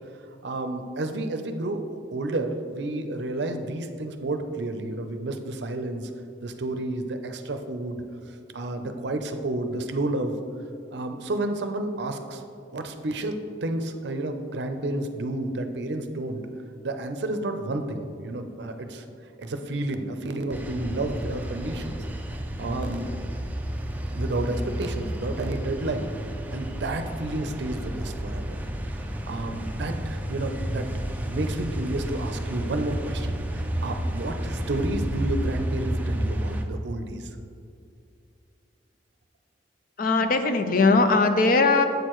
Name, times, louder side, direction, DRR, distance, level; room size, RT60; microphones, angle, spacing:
voice 1, 0.4-1.8 2.1-6.1 6.4-8.0 8.5-10.4 10.9-12.4 12.7-16.4 16.8-19.0 19.4-22.0 22.6-23.1 24.1-26.1 26.5-28.6 29.0-30.9 31.2-37.3, right 2 dB, 65° right, 7 dB, 0.6 m, -31 dB
sound 1, 20.5-36.6, right 1 dB, 10° right, 0.4 m, -31 dB
voice 2, 40.0-41.9, left 3 dB, 50° left, 8 dB, 0.5 m, -20 dB
7.9 x 6.5 x 3.0 m, 2.5 s
head